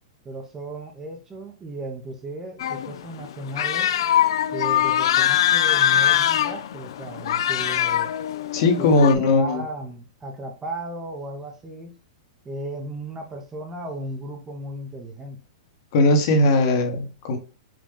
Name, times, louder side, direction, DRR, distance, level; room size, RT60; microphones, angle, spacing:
voice 1, 0.2-3.9 4.5-8.1 8.8-12.0 12.4-15.4, right 1 dB, 15° right, 4 dB, 0.6 m, -35 dB
sound 1, 2.6-9.1, left 11 dB, 65° left, 0.4 m, -22 dB
voice 2, 8.5-9.6 15.9-17.4, left 2 dB, 50° left, 4 dB, 1.1 m, -19 dB
5.0 x 2.3 x 3.6 m, 0.35 s
hypercardioid pair, 155°, 3 cm